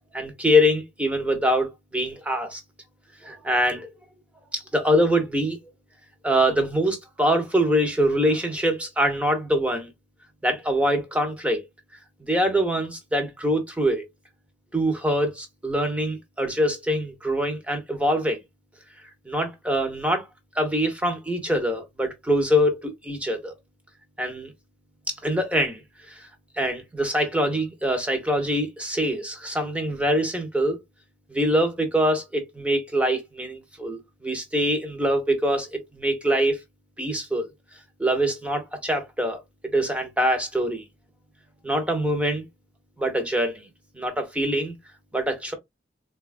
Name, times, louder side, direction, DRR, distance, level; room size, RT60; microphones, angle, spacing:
voice 1, 0.1-2.6 3.2-3.9 4.5-5.6 6.2-9.9 10.4-11.6 12.2-14.0 14.7-18.4 19.3-20.3 20.5-23.5 24.2-24.5 25.1-25.8 26.1-26.3 26.6-30.8 31.3-36.6 37.0-37.5 38.0-39.4 39.7-40.8 41.6-42.4 43.0-43.7 43.9-44.7 45.1-45.5, equal, 5° right, 0.7 m, -24 dB
3.7 x 2.3 x 2.4 m
head